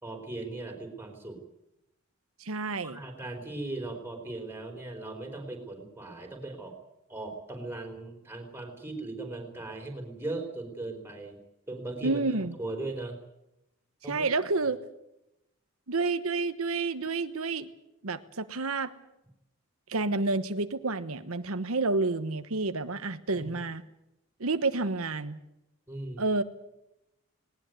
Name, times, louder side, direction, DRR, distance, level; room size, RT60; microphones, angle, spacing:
voice 1, 0.0-1.4 2.8-6.8 7.1-11.4 11.7-12.2 12.6-13.2 14.0-14.3 23.3-23.5 25.9-26.3, right 2 dB, 10° right, 3 dB, 4.2 m, -38 dB
voice 2, 2.4-3.0 12.0-12.6 14.0-14.8 15.9-17.7 18.0-18.9 19.9-23.8 24.4-25.4 26.2-26.4, right 3 dB, 85° right, 10 dB, 1.2 m, -29 dB
19.5 x 19.0 x 9.4 m, 0.87 s
head